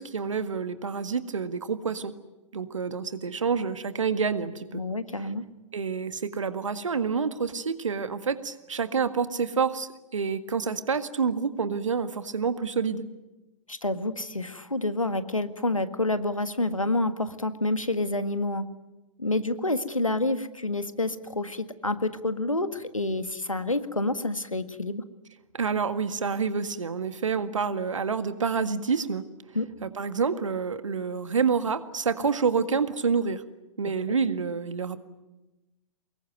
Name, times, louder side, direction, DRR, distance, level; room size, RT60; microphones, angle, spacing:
voice 1, 0.0-2.1 2.5-4.8 5.2-5.3 5.7-13.1 25.5-29.3 29.8-33.4 33.8-35.0, right 5 dB, 70° right, 11 dB, 1.7 m, -28 dB
voice 2, 4.7-5.4 13.7-18.6 19.2-25.0 29.6-29.7, left 2 dB, 85° left, 10 dB, 1.8 m, -28 dB
24.5 x 21.5 x 9.3 m, 1.1 s
figure-of-eight pair, 105°, 17 cm